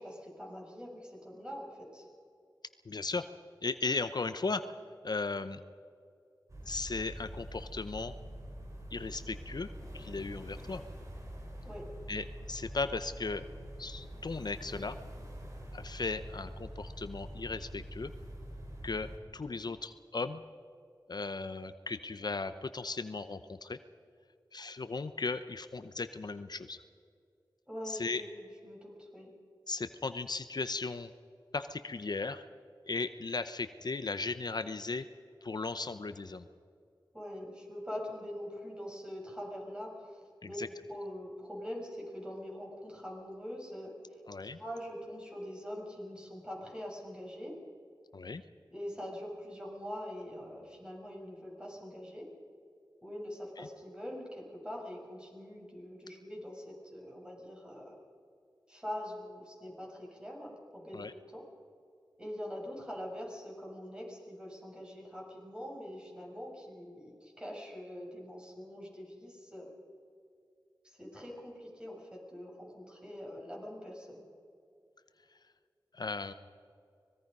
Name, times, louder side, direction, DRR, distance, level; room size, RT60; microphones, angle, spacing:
voice 1, 0.0-2.1 11.6-11.9 27.7-28.2 28.6-29.3 37.1-40.6 40.9-44.2 44.6-47.6 48.7-52.3 53.0-58.0 58.7-61.4 62.2-69.7 70.8-74.3, equal, 10° right, -2 dB, 6.8 m, -43 dB
voice 2, 2.9-3.2 3.6-4.6 5.0-5.6 6.7-8.1 8.9-10.8 12.1-13.4 13.8-15.0 15.7-18.1 18.8-20.4 21.1-23.8 24.5-26.8 27.8-28.2 29.7-31.1 31.5-32.5 32.9-35.0 35.4-36.5 40.6-40.7 44.3-44.6 48.1-48.4 53.6-53.7 60.9-61.1 75.9-76.3, left 3 dB, 60° left, 11 dB, 0.7 m, -36 dB
sound 1, 6.5-19.2, equal, 40° right, 5.0 m, -45 dB
25.0 x 20.5 x 5.4 m, 2.4 s
wide cardioid pair, 60°, 8 cm